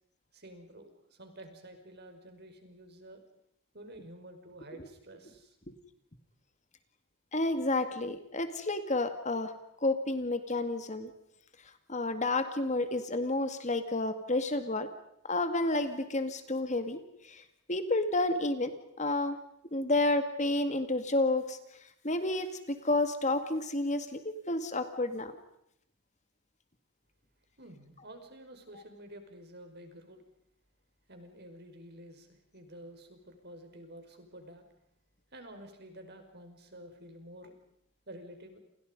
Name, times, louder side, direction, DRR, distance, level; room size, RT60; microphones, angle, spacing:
voice 1, 0.3-3.2 3.7-5.6 27.6-30.2 31.1-34.7 35.3-37.5 38.1-38.6, right 1 dB, 45° right, 6 dB, 5.6 m, -50 dB
voice 2, 7.3-9.5 9.8-11.1 11.9-14.9 15.3-19.4 19.7-21.6 22.0-25.3, left 2 dB, 30° left, 9 dB, 2.0 m, -30 dB
29.5 x 28.5 x 5.4 m, 0.77 s
head